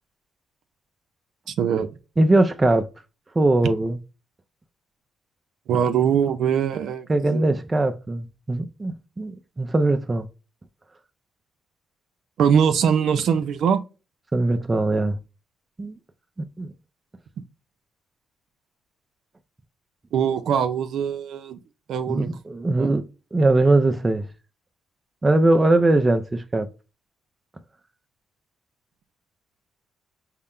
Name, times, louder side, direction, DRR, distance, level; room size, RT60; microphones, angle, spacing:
voice 1, 1.5-1.9 5.7-7.6 12.4-13.8 20.1-21.6 21.9-22.3 22.8-22.9, right 7 dB, 70° right, 0.5 m, -22 dB
voice 2, 2.2-2.9 3.4-4.0 7.1-10.3 14.3-15.2 15.8-16.0 16.6-16.7 22.1-23.0 23.3-24.3 25.2-26.7, right 2 dB, 20° right, 0.5 m, -20 dB
5.6 x 2.1 x 3.6 m
cardioid pair, 90°, 0 cm